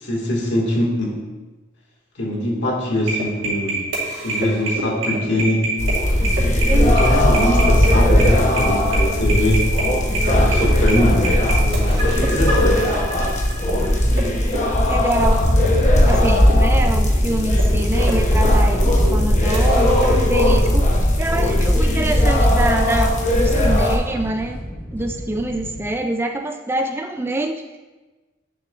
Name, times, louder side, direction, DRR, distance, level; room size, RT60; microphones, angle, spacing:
voice 1, 0.0-1.2 2.2-3.8 4.2-5.8 6.7-9.7 10.3-12.8 18.8-19.3, left 1 dB, 60° left, -3 dB, 1.9 m, -22 dB
sound 1, 3.0-20.4, right 2 dB, 65° right, 2.6 m, -28 dB
sound 2, 5.8-24.0, left 1 dB, 35° left, 0.9 m, -17 dB
voice 2, 6.7-7.2 14.9-15.4 16.1-19.9 20.2-24.6 24.9-27.8, right 2 dB, 10° right, 3 dB, 0.3 m, -25 dB
sound 3, 15.2-25.9, equal, 10° left, 0.7 m, -30 dB
9.7 x 6.7 x 2.5 m, 1.2 s
head